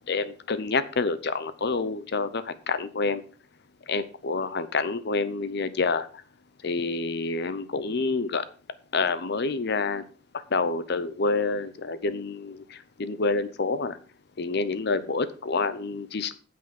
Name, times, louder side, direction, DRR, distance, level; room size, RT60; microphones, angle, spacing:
voice 1, 0.1-3.2 3.9-6.1 6.6-8.4 8.9-10.0 10.5-14.0 14.4-16.4, left 3 dB, 55° left, 14 dB, 0.7 m, -28 dB
9.2 x 7.7 x 5.8 m, 0.39 s
head